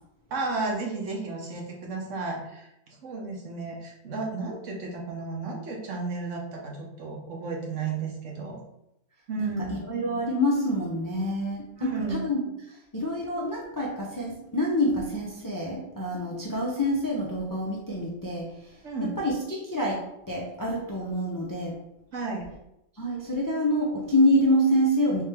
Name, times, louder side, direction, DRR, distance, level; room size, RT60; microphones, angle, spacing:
voice 1, 0.3-8.6 9.3-9.7 11.8-12.3 18.8-19.2 22.1-22.5, right 3 dB, 70° right, 0 dB, 1.2 m, -33 dB
voice 2, 9.4-12.4 12.9-18.7 19.0-21.7 23.0-25.2, equal, 25° left, -3 dB, 0.4 m, -27 dB
3.6 x 3.3 x 3.3 m, 0.83 s
omnidirectional pair, 1.3 m